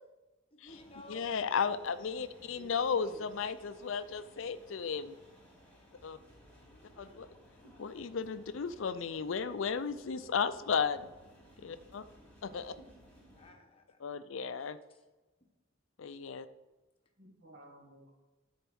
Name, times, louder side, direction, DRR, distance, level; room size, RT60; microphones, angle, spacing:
voice 1, 0.5-1.3 6.6-7.3 13.3-14.0 14.5-15.0, left 1 dB, 30° left, 4 dB, 1.1 m, -56 dB
sound 1, 0.7-13.5, equal, 10° left, 2.9 m, -60 dB
voice 2, 1.1-5.2 6.0-6.2 7.0-7.3 7.8-11.1 11.6-12.0 12.4-12.7 14.0-14.8 16.0-16.5, left 6 dB, 70° left, 13 dB, 0.5 m, -34 dB
voice 3, 2.5-3.3 7.6-7.7 12.5-12.9 17.2-18.1, equal, 50° right, 0 dB, 2.0 m, -56 dB
10.0 x 4.6 x 6.2 m, 1.2 s
head